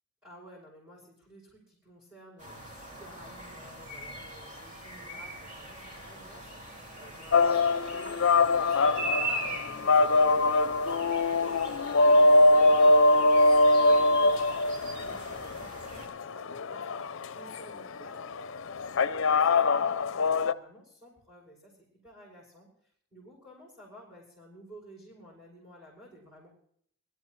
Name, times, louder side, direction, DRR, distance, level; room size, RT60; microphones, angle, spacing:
voice 1, 0.2-26.5, equal, 10° right, -6 dB, 6.1 m, -53 dB
sound 1, 2.4-16.1, right 1 dB, 35° right, 2.6 m, -41 dB
sound 2, 7.3-20.5, left 2 dB, 60° left, 0.6 m, -23 dB
23.0 x 13.0 x 3.2 m, 0.64 s
head